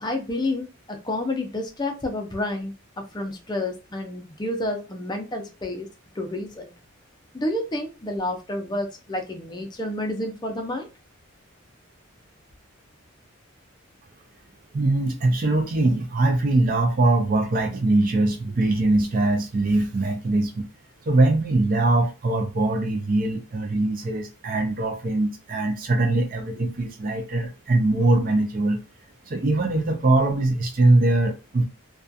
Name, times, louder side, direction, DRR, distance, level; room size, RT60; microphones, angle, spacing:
voice 1, 0.0-2.7 3.1-5.9 6.2-6.7 7.3-10.9, left 1 dB, 20° left, 0.4 m, -29 dB
voice 2, 14.7-20.7 21.1-28.8 29.3-31.6, right 2 dB, 40° right, 0.4 m, -22 dB
2.3 x 2.3 x 2.6 m
head